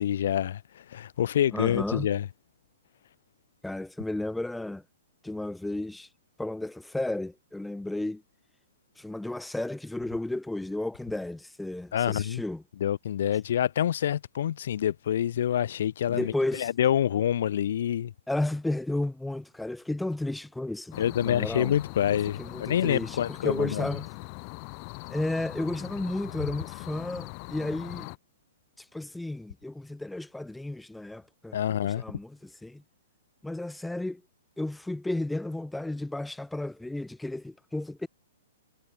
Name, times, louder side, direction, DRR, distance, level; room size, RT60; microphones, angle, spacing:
voice 1, 0.0-2.3 11.9-12.4 12.8-18.1 21.0-23.9 31.5-32.0, left 10 dB, 55° left, 2.1 m, -27 dB
voice 2, 1.5-2.1 3.6-4.8 5.2-6.1 6.4-8.2 9.0-12.6 16.1-16.7 18.3-21.8 22.1-24.1 25.1-28.1 28.8-31.6 31.8-32.8 33.4-34.2 34.6-38.1, left 2 dB, ahead, 0.4 m, -33 dB
sound 1, 20.9-28.2, left 40 dB or more, 25° left, 3.2 m, -41 dB
hypercardioid pair, 175°, 0 cm